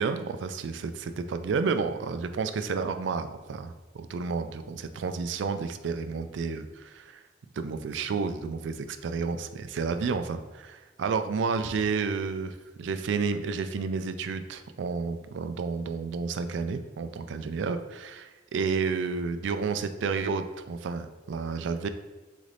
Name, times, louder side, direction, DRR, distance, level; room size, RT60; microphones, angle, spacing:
voice 1, 0.0-7.2 7.6-21.9, right 5 dB, 70° right, 9 dB, 0.3 m, -31 dB
4.1 x 3.3 x 3.8 m, 1.2 s
head